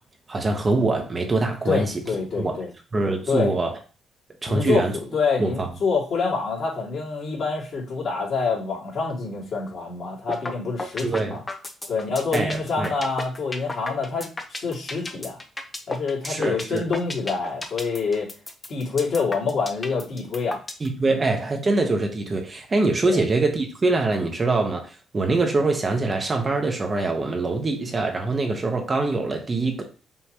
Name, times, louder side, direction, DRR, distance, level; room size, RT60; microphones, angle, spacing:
voice 1, 0.3-2.0 2.4-2.6 2.9-3.7 4.4-4.9 5.4-5.7 11.0-11.4 12.3-12.9 16.2-16.9 20.8-29.8, right 3 dB, 30° right, 1.1 m, -24 dB
voice 2, 1.6-2.7 3.3-3.5 4.5-11.4 11.9-14.3 14.6-15.4 15.9-18.3 18.7-20.6 21.1-21.2 23.0-23.2, left 4 dB, 60° left, 2.4 m, -26 dB
sound 1, 10.3-10.5 10.8-20.9, left 2 dB, 20° left, 0.8 m, -32 dB
5.4 x 3.0 x 3.0 m
cardioid pair, 90°, 0 cm